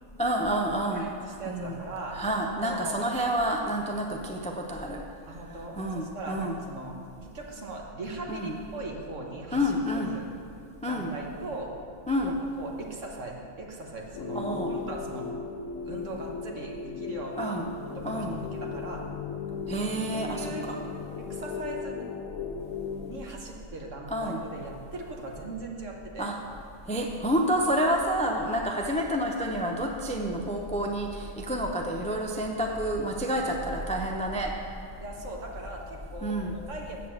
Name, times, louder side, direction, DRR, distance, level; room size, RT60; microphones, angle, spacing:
voice 1, 0.2-1.1 1.4-1.8 2.1-5.0 5.5-6.6 8.3-8.6 9.5-10.1 10.8-11.1 12.1-12.4 14.3-14.7 17.4-17.7 18.0-18.4 19.7-20.8 24.1-24.4 26.2-26.4 26.9-34.6 36.2-36.5, equal, 10° left, 1 dB, 0.4 m, -29 dB
voice 2, 0.9-2.2 2.6-3.0 5.3-6.9 7.2-9.7 10.0-10.3 10.9-11.7 12.2-15.3 15.8-17.6 17.8-19.0 20.1-20.7 21.2-22.0 23.1-26.3 35.0-37.0, right 2 dB, 65° right, 0 dB, 1.6 m, -39 dB
sound 1, 14.1-23.2, left 5 dB, 75° left, 1.0 m, -37 dB
8.2 x 7.5 x 7.1 m, 2.5 s
omnidirectional pair, 1.4 m